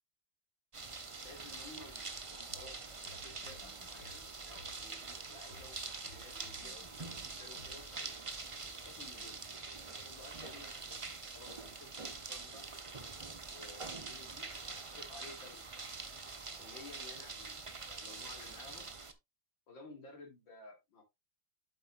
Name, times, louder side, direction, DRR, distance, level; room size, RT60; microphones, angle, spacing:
sound 1, 0.7-19.1, right 4 dB, 45° right, 0.4 m, -45 dB
voice 1, 1.2-8.1 8.6-9.4 10.0-11.1 11.3-12.9 13.5-15.6 16.6-18.9 19.7-21.0, left 3 dB, 85° left, 1 dB, 3.9 m, -55 dB
sound 2, 2.5-4.8 5.1-7.8 8.1-8.5, left 1 dB, 60° left, 2.3 m, -58 dB
8.1 x 8.1 x 2.5 m, 0.20 s
omnidirectional pair, 2.0 m